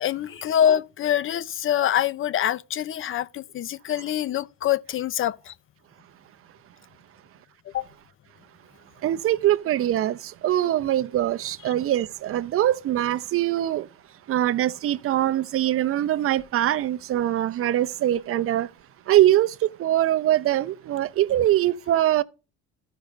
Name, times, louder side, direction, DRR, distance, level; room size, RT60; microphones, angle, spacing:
voice 1, 0.0-5.5 7.7-7.8, left 10 dB, 45° left, 0.6 m, -25 dB
voice 2, 9.0-13.9 14.3-18.7 19.1-22.2, right 13 dB, 50° right, 0.7 m, -23 dB
13.0 x 5.2 x 5.3 m
supercardioid pair, 100°, 29 cm